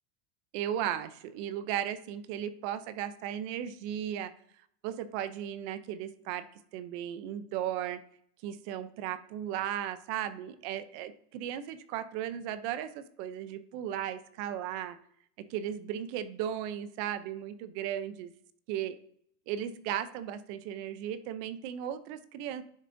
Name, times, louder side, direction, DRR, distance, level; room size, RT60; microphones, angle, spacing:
voice 1, 0.5-4.3 4.8-6.5 6.7-8.0 8.4-15.0 15.4-18.3 18.7-19.0 19.5-22.6, right 10 dB, 45° right, 13 dB, 0.6 m, -36 dB
10.5 x 6.9 x 2.6 m, 0.66 s
supercardioid pair, 165°, 46 cm